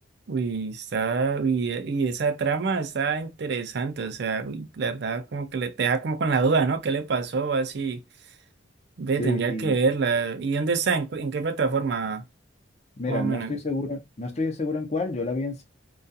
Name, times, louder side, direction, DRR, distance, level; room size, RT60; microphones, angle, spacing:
voice 1, 0.3-8.0 9.0-12.2 13.1-13.5, right 4 dB, 55° right, 0.4 m, -26 dB
voice 2, 9.2-9.8 13.0-15.6, left 2 dB, 35° left, 0.6 m, -29 dB
2.3 x 2.3 x 2.6 m
head